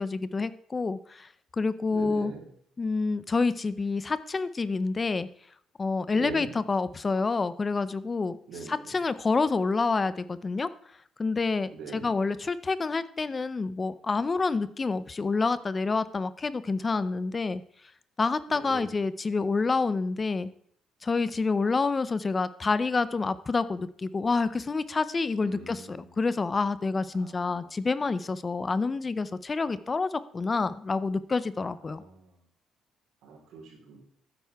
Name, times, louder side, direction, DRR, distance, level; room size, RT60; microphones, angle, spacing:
voice 1, 0.0-2.3 2.8-5.3 5.8-10.7 11.2-17.6 18.2-20.5 21.0-32.0, left 4 dB, 20° left, 15 dB, 0.5 m, -28 dB
voice 2, 1.9-2.4 6.1-6.5 8.5-8.8 11.7-12.1 18.5-18.9 25.4-26.0 27.1-27.6 31.9-32.1 33.2-34.0, right 4 dB, 70° right, -1 dB, 3.8 m, -42 dB
12.5 x 9.3 x 3.5 m, 0.65 s
cardioid pair, 165°, 0 cm